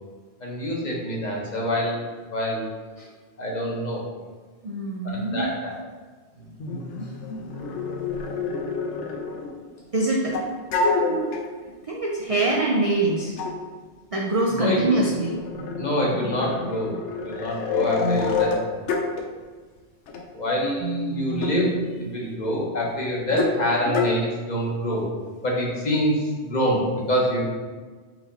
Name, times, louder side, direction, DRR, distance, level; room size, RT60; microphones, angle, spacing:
voice 1, 0.4-2.0 2.3-2.6 3.4-4.0 5.0-5.8 6.4-6.5 14.6-15.0 15.8-17.0 17.2-18.6 20.3-25.0 25.4-27.4, equal, 45° left, -3 dB, 0.9 m, -26 dB
voice 2, 4.6-5.5 9.9-10.4 11.0-11.3 11.9-13.4 14.1-15.4 20.8-21.8, right 2 dB, 55° right, -2 dB, 0.4 m, -25 dB
sound 1, 6.6-9.7 10.3-11.5 12.3-12.4 13.4-13.6 14.5-19.2 20.1-20.2 21.3-21.6 23.3-23.6 23.8-24.1, left 4 dB, 85° left, 0.9 m, -28 dB
4.5 x 2.7 x 3.9 m, 1.4 s
omnidirectional pair, 1.2 m